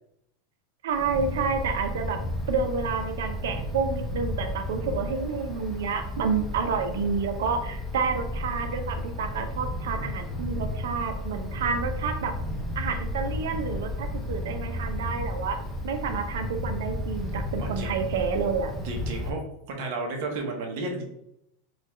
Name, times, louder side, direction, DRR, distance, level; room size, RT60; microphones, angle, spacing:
voice 1, 0.8-2.2 2.5-12.3 12.7-15.6 15.8-18.7, right 5 dB, 85° right, 6 dB, 0.6 m, -29 dB
Wind, 0.9-19.3, left 1 dB, 10° left, 0.6 m, -33 dB
voice 2, 17.6-17.9 18.8-19.4 19.7-21.1, right 3 dB, 60° right, 2 dB, 0.9 m, -32 dB
4.0 x 2.4 x 3.0 m, 0.78 s
supercardioid pair, 155°, 0 cm